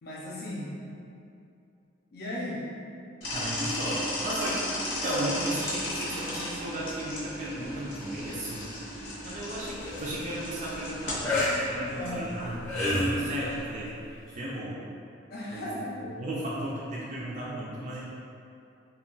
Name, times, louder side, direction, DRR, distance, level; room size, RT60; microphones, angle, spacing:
voice 1, 0.0-0.7 2.1-2.6 12.0-12.3 15.3-16.0, left 1 dB, 55° left, -7 dB, 0.4 m, -36 dB
sound 1, 3.2-13.6, left 1 dB, 85° left, 0.8 m, -36 dB
voice 2, 3.3-8.7 9.2-12.6 12.9-13.9 14.4-14.8 15.5-18.1, right 1 dB, 40° right, -6 dB, 0.3 m, -35 dB
sound 2, 9.6-10.0 11.2-11.6 12.4-13.2 14.3-14.4, left 1 dB, 15° left, 0.7 m, -27 dB
2.2 x 2.2 x 3.7 m, 2.6 s
head